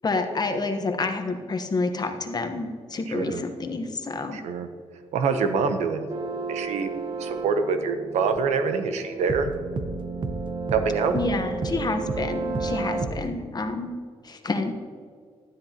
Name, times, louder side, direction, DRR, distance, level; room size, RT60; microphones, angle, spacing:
voice 1, 0.0-4.4 11.1-14.0 14.2-14.7, left 3 dB, 35° left, 6 dB, 1.2 m, -28 dB
voice 2, 4.3-4.7 5.1-6.1 6.5-6.9 7.2-9.5 10.7-11.1, right 5 dB, 90° right, 8 dB, 0.9 m, -25 dB
sound 1, 6.1-13.3, right 3 dB, 45° right, 0.8 m, -31 dB
12.0 x 10.5 x 2.9 m, 2.1 s
cardioid pair, 85°, 11 cm